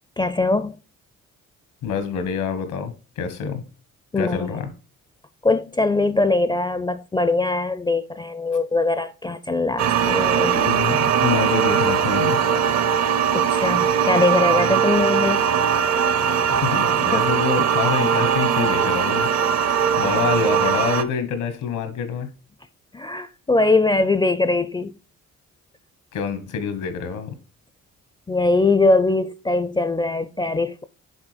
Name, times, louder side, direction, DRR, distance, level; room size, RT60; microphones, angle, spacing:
voice 1, 0.2-0.8 4.1-4.6 5.4-10.7 13.3-15.4 17.1-17.3 22.9-24.9 28.3-30.8, left 2 dB, 15° left, 0.4 m, -21 dB
voice 2, 1.8-3.6 4.2-4.7 10.5-12.4 16.5-19.3 20.0-22.3 26.1-27.3, left 6 dB, 85° left, 1.4 m, -26 dB
sound 1, 9.8-21.0, right 7 dB, 60° right, 0.7 m, -20 dB
7.3 x 3.9 x 4.9 m
cardioid pair, 90°, 30 cm